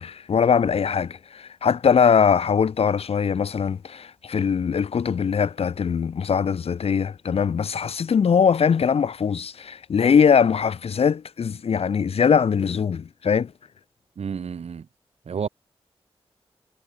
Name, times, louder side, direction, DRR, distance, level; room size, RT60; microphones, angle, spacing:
voice 1, 0.0-13.5, left 6 dB, 70° left, 0.8 m, -21 dB
voice 2, 14.2-14.9 15.3-15.5, right 6 dB, 85° right, 3.1 m, -30 dB
wide cardioid pair, 80°, 10 cm